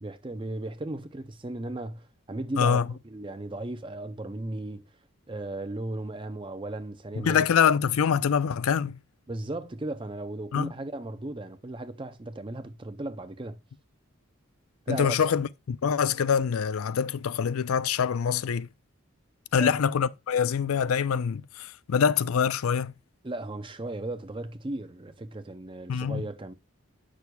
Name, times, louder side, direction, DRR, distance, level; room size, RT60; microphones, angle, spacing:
voice 1, 0.0-4.8 5.3-7.5 9.3-13.6 14.9-15.2 19.6-19.8 23.2-26.5, right 2 dB, 25° right, 0.6 m, -36 dB
voice 2, 7.2-9.0 10.5-10.7 14.9-18.7 19.5-22.9 25.9-26.2, left 7 dB, 80° left, 0.4 m, -25 dB
8.4 x 6.1 x 2.3 m
head